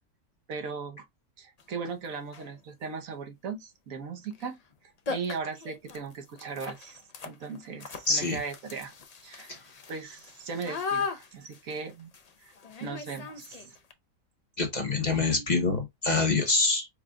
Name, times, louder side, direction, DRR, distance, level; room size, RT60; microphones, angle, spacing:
voice 1, 0.5-1.0 1.4-8.9 9.2-9.6 9.9-12.1 12.4-12.5 12.8-13.8, right 5 dB, 65° right, 1.3 m, -38 dB
sound 1, 1.6-1.7 2.2-2.6 4.3-4.5 4.7-4.8 5.1-13.9, left 5 dB, 60° left, 0.4 m, -39 dB
voice 2, 8.1-8.4 9.5-9.6 14.6-16.9, left 3 dB, 35° left, 0.9 m, -25 dB
4.8 x 2.3 x 3.5 m
omnidirectional pair, 1.6 m